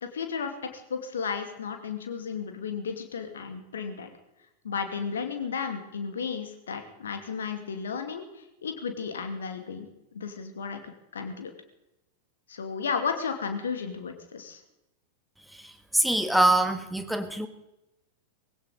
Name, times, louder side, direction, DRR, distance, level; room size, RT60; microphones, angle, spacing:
voice 1, 0.0-4.1 4.6-8.2 8.6-9.9 10.1-10.8 11.1-11.5 12.5-14.6, left 6 dB, 65° left, 6 dB, 2.3 m, -33 dB
voice 2, 15.5-17.5, right 1 dB, ahead, 8 dB, 1.5 m, -24 dB
21.0 x 17.0 x 3.9 m, 0.90 s
figure-of-eight pair, 90°, 0 cm